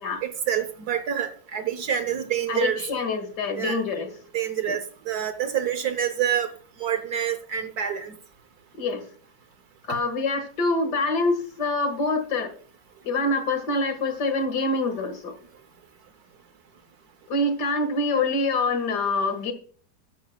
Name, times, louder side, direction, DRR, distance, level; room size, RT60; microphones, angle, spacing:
voice 1, 0.2-2.8 3.6-3.8 4.3-4.8 5.1-6.5 6.8-8.1, right 9 dB, 65° right, 10 dB, 1.3 m, -27 dB
voice 2, 2.5-4.2 4.7-4.8 8.8-9.0 9.9-12.5 13.0-15.3 17.3-19.5, left 2 dB, 70° left, 8 dB, 2.4 m, -25 dB
12.5 x 12.0 x 2.3 m, 0.43 s
omnidirectional pair, 1.9 m